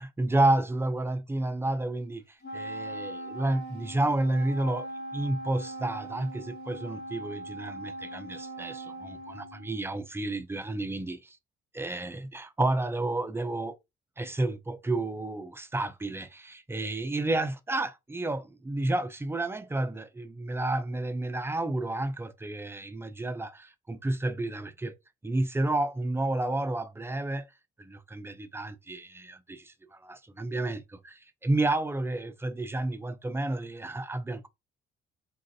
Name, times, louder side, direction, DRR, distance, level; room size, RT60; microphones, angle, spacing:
voice 1, 0.0-2.2 2.5-11.4 11.7-13.8 14.2-24.9 25.2-27.5 27.8-34.5, right 2 dB, 10° right, 0.4 m, -31 dB
Wind instrument woodwind instrument, 2.4-10.1, right 2 dB, 55° left, 0.8 m, -40 dB
4.0 x 2.5 x 2.6 m
cardioid pair, 90°, 20 cm